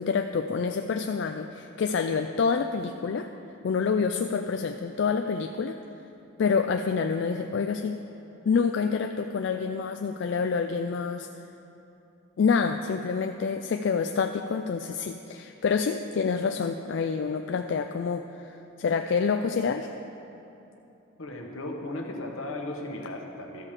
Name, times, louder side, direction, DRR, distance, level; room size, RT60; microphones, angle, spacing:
voice 1, 0.0-3.3 3.6-5.8 6.4-8.0 8.5-11.3 12.4-19.9, left 5 dB, 55° left, 6 dB, 0.3 m, -27 dB
voice 2, 21.2-23.7, left 1 dB, 75° left, 1 dB, 1.2 m, -36 dB
13.0 x 4.9 x 7.3 m, 2.9 s
head